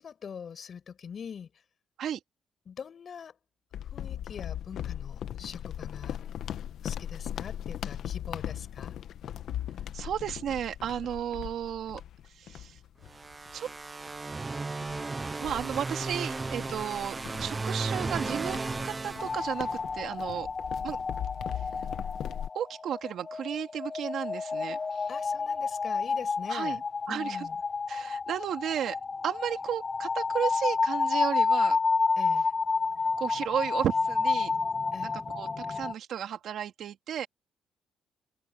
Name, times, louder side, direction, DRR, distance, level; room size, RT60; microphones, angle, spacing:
voice 1, 0.0-1.5 2.6-3.4 3.9-6.2 6.8-9.0 25.1-26.8 27.1-27.6 32.2-32.5 34.9-35.2, left 7 dB, 50° left, 6.0 m, -43 dB
sound 1, 3.7-13.6 14.1-14.2 14.8-22.5, left 10 dB, 70° left, 1.2 m, -39 dB
voice 2, 9.9-12.0 12.3-12.8 13.5-13.7 15.4-18.6 18.8-20.5 20.8-21.0 21.6-21.7 22.5-25.1 26.5-26.8 27.1-27.5 27.9-29.0 29.2-31.8 33.2-34.5 35.0-37.3, right 9 dB, 70° right, 2.1 m, -33 dB
sound 2, 13.1-20.0, right 3 dB, 25° right, 0.6 m, -35 dB
sound 3, 19.2-35.9, left 4 dB, 35° left, 0.3 m, -30 dB
cardioid pair, 90°, 0 cm